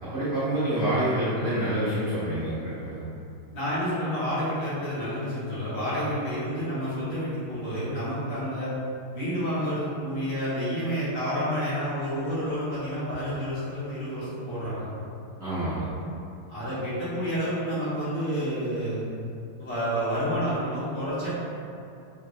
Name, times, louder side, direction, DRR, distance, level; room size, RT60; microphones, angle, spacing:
voice 1, 0.0-3.0 15.4-16.0, right 1 dB, 85° right, -13 dB, 0.5 m, -27 dB
voice 2, 3.5-8.7 9.1-14.9 16.5-19.1 19.6-21.3, equal, 80° left, -12 dB, 2.4 m, -29 dB
5.6 x 2.0 x 2.7 m, 2.6 s
omnidirectional pair, 2.4 m